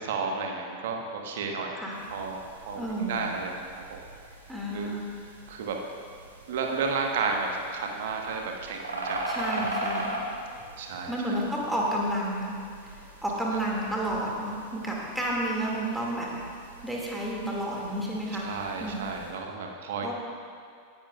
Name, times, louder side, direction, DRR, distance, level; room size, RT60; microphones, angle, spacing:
voice 1, 0.0-1.8 2.1-4.0 4.7-4.9 5.5-5.8 6.5-9.4 10.8-11.4 18.4-20.1, right 4 dB, 55° right, 2 dB, 1.3 m, -32 dB
sound 1, 1.9-19.3, right 1 dB, 75° right, 1.6 m, -40 dB
voice 2, 2.8-3.2 4.5-5.1 9.3-10.2 11.1-12.6 13.2-16.3 16.8-18.5 18.8-19.0 20.0-20.1, right 1 dB, 5° right, -4 dB, 2.2 m, -31 dB
18.0 x 10.5 x 2.4 m, 2.3 s
figure-of-eight pair, 90°, 0 cm